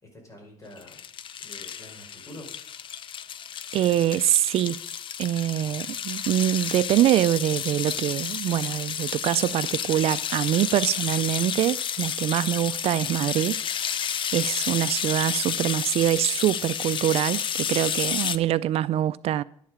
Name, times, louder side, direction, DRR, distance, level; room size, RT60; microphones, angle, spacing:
voice 1, 0.0-1.0 1.4-2.5 14.0-14.2, left 1 dB, 30° left, 5.1 m, -47 dB
sound 1, 0.8-18.4, left 8 dB, 50° left, 0.6 m, -31 dB
voice 2, 3.7-4.8 5.2-19.4, right 12 dB, 65° right, 0.4 m, -24 dB
11.5 x 10.5 x 4.9 m
cardioid pair, 120°, 11 cm